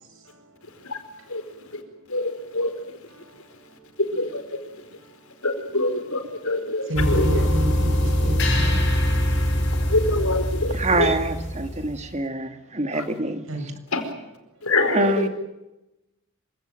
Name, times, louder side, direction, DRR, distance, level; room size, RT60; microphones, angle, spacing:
voice 1, 2.1-2.7 4.1-4.4 5.4-6.8 7.1-7.3 9.9-11.1 13.9-14.0 14.6-15.3, left 2 dB, 85° left, 7 dB, 4.7 m, -24 dB
sound 1, 6.9-12.1, equal, 55° left, 7.9 m, -23 dB
voice 2, 6.9-8.8 13.5-13.6, equal, 65° right, 6 dB, 5.8 m, -28 dB
voice 3, 10.7-13.4 14.9-15.3, right 2 dB, 30° right, 7 dB, 2.3 m, -25 dB
27.0 x 17.0 x 9.2 m, 0.95 s
head